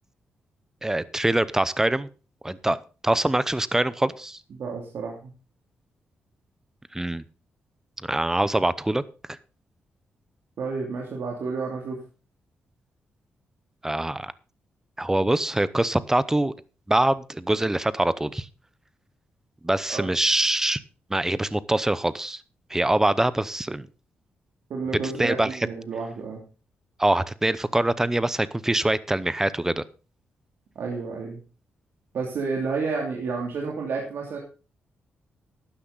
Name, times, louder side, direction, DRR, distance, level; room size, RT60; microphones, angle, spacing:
voice 1, 0.8-2.1 2.4-2.8 3.0-4.4 6.9-7.2 8.0-9.0 9.3-9.4 13.8-14.3 15.0-16.5 16.9-18.5 19.6-20.8 21.1-22.4 22.7-23.9 25.2-25.7 27.0-29.8, right 1 dB, 10° right, 17 dB, 0.7 m, -24 dB
voice 2, 4.5-5.3 10.6-12.0 19.9-20.1 24.7-26.4 30.7-31.4 32.1-34.4, right 4 dB, 70° right, -1 dB, 2.8 m, -30 dB
12.5 x 10.0 x 4.0 m, 0.34 s
cardioid pair, 95°, 4 cm